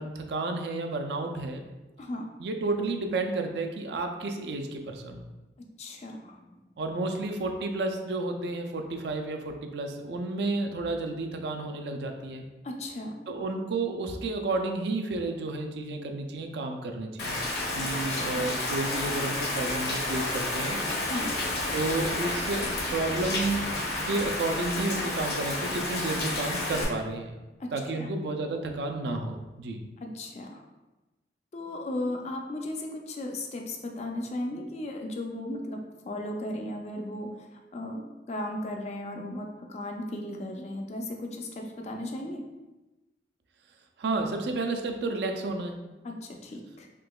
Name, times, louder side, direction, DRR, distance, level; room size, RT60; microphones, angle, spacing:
voice 1, 0.0-1.6 2.4-5.3 6.8-12.5 13.3-17.4 17.7-20.8 21.7-27.4 27.7-29.9 44.0-45.8, right 2 dB, 70° right, 5 dB, 0.4 m, -31 dB
voice 2, 5.8-6.6 12.6-13.1 18.1-18.5 21.1-21.3 27.6-27.7 28.0-28.1 30.0-30.6 31.5-35.8 36.0-37.3 37.7-42.4 46.0-46.9, left 1 dB, 35° left, 2 dB, 0.3 m, -36 dB
Rain, 17.2-26.8, left 2 dB, 65° left, 0.7 m, -31 dB
3.7 x 2.8 x 2.3 m, 1.1 s
head